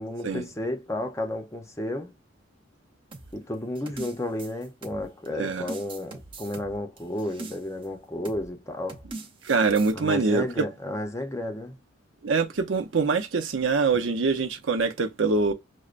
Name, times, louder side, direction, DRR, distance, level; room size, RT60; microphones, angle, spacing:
voice 1, 0.0-2.1 3.3-9.0 9.9-11.8 13.9-14.0, left 1 dB, 15° left, 0.6 m, -32 dB
sound 1, 3.1-5.3 5.7-7.9 8.3-8.5 8.9-9.9, right 3 dB, 25° right, 0.6 m, -42 dB
voice 2, 5.3-5.7 9.4-10.6 12.2-15.5, right 4 dB, 80° right, 0.6 m, -24 dB
6.3 x 2.1 x 2.4 m
head